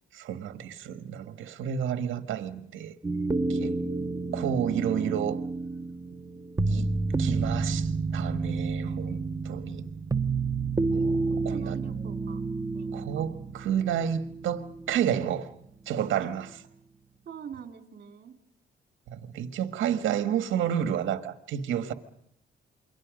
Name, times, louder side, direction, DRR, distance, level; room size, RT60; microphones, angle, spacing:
voice 1, 0.1-2.9 3.5-3.8 4.3-5.4 6.7-6.9 7.2-9.9 10.9-11.8 12.9-15.5 15.8-16.5 19.1-21.9, right 9 dB, 75° right, 1.6 m, -30 dB
sound 1, 3.0-15.1 15.4-15.5, right 3 dB, 15° right, 1.1 m, -30 dB
voice 2, 3.6-4.6 11.3-12.4 12.7-13.3 16.1-16.3 17.2-18.4, right 7 dB, 55° right, 3.3 m, -45 dB
28.5 x 23.5 x 5.2 m
cardioid pair, 90°, 20 cm